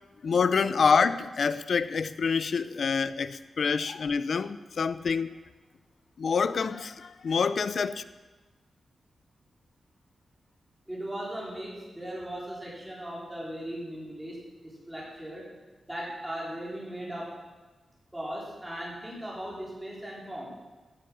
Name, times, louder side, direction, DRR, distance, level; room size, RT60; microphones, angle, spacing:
voice 1, 0.2-5.4 6.2-8.0, left 5 dB, 50° left, 0.5 m, -26 dB
voice 2, 10.9-14.4 14.6-15.4 15.9-17.3 18.1-20.5, right 1 dB, 5° right, 3.7 m, -38 dB
16.0 x 7.8 x 6.2 m
wide cardioid pair, 180°, 0 cm